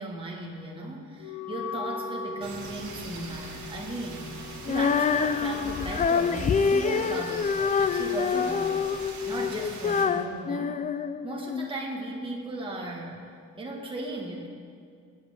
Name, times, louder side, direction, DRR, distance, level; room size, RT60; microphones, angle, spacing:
voice 1, 0.0-4.4 4.7-8.8 9.3-10.8 11.2-13.2 13.6-14.5, right 2 dB, 15° right, -3 dB, 2.1 m, -36 dB
Wind instrument woodwind instrument, 1.2-8.2, left 6 dB, 70° left, 1.6 m, -41 dB
sound 1, 2.4-10.1, right 3 dB, 65° right, 2.5 m, -42 dB
Female singing, 4.7-11.7, left 6 dB, 25° left, 0.4 m, -26 dB
19.5 x 8.1 x 3.9 m, 2.2 s
cardioid pair, 90°, 30 cm